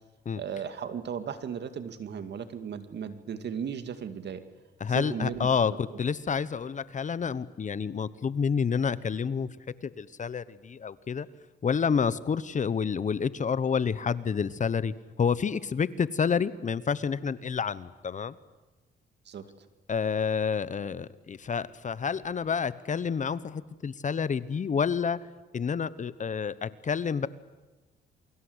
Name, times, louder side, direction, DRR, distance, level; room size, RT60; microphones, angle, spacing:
voice 1, 0.3-4.4 4.9-6.0 19.3-19.7, right 7 dB, 60° right, 10 dB, 2.3 m, -36 dB
voice 2, 4.8-9.5 10.0-11.3 11.6-18.3 19.9-25.2 25.5-27.3, left 6 dB, 40° left, 17 dB, 1.0 m, -29 dB
28.5 x 23.5 x 8.1 m, 1.1 s
cardioid pair, 90°, 20 cm